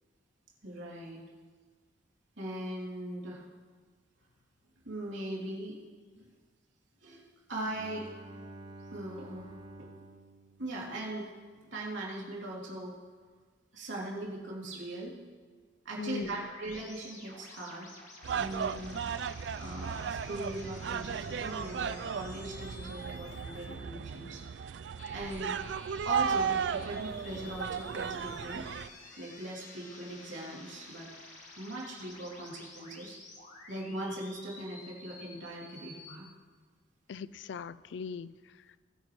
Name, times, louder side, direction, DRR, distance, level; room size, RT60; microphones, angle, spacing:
voice 1, 0.6-1.2 2.4-3.5 4.8-5.8 6.1-6.3 7.0-8.1 8.9-10.0 10.6-11.3 11.6-12.9 13.7-15.2 15.8-17.9 18.3-19.0 19.6-24.7 25.1-25.6 26.0-28.7 29.2-31.1 31.6-33.2 33.7-36.3, right 1 dB, 80° right, -4 dB, 2.9 m, -40 dB
Bowed string instrument, 7.6-11.4, right 1 dB, 25° right, 0.9 m, -50 dB
voice 2, 16.0-16.5 37.1-38.8, left 5 dB, 70° left, 18 dB, 0.3 m, -40 dB
sound 1, 16.4-36.1, left 2 dB, 40° left, 1.9 m, -52 dB
sound 2, 18.2-28.9, right 7 dB, 65° right, 0.3 m, -35 dB
20.0 x 9.6 x 3.1 m, 1.5 s
head